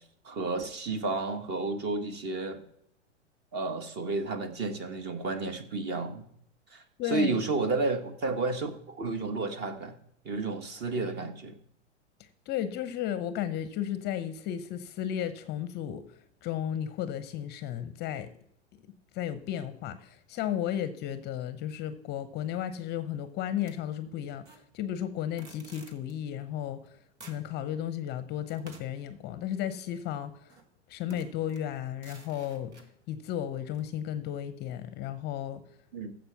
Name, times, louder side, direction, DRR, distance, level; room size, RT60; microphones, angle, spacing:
voice 1, 0.2-2.6 3.5-6.3 6.7-10.0 10.2-11.6 35.9-36.1, right 3 dB, 30° right, 9 dB, 1.3 m, -31 dB
voice 2, 7.0-7.3 12.5-16.0 16.4-18.3 19.1-26.8 27.2-30.5 30.9-32.7 33.1-35.6, left 10 dB, 30° left, 12 dB, 0.7 m, -34 dB
sound 1, 23.7-24.7 25.4-26.1 26.9-27.0 27.2-27.5 28.5-29.9 30.5-30.7 31.1-32.9 33.7-33.8, right 3 dB, 70° right, 1.7 m, -53 dB
14.5 x 5.2 x 5.8 m, 0.70 s
figure-of-eight pair, 100°, 35 cm